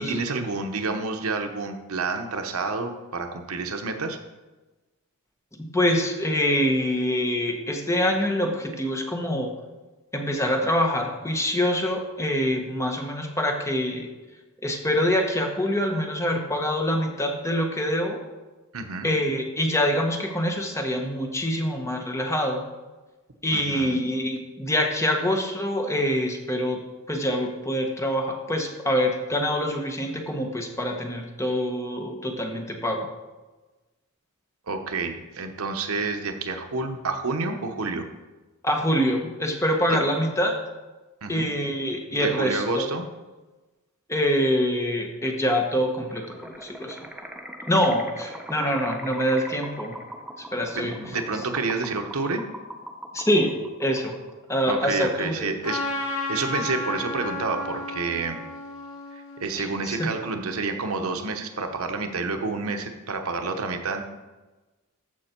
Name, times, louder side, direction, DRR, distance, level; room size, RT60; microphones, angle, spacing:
voice 1, 0.0-4.2 18.7-19.1 23.5-24.0 34.7-38.1 39.9-40.0 41.2-41.5 42.1-43.1 50.7-52.4 54.7-55.8 56.1-58.4 59.1-64.0, right 3 dB, 75° right, 6 dB, 0.9 m, -29 dB
voice 2, 5.6-9.5 10.1-14.1 14.6-18.2 19.0-22.6 23.4-26.8 27.1-33.1 38.6-40.5 41.3-42.9 44.1-47.1 47.7-50.0 50.5-50.9 53.1-54.2 54.5-55.5 59.6-60.1, equal, 15° left, 2 dB, 1.2 m, -25 dB
sound 1, 46.1-54.5, right 1 dB, 5° right, 0.7 m, -41 dB
Trumpet, 55.6-60.3, left 2 dB, 75° left, 1.8 m, -33 dB
14.0 x 5.3 x 4.4 m, 1.2 s
head